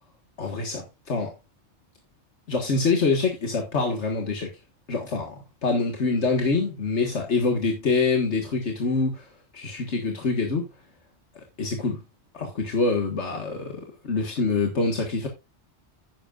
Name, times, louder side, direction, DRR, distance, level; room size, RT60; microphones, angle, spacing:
voice 1, 0.4-1.3 2.5-4.5 4.9-9.3 9.5-10.7 11.4-12.0 12.3-15.3, left 4 dB, 85° left, 2.0 m, -25 dB
11.0 x 10.0 x 2.5 m
omnidirectional pair, 1.1 m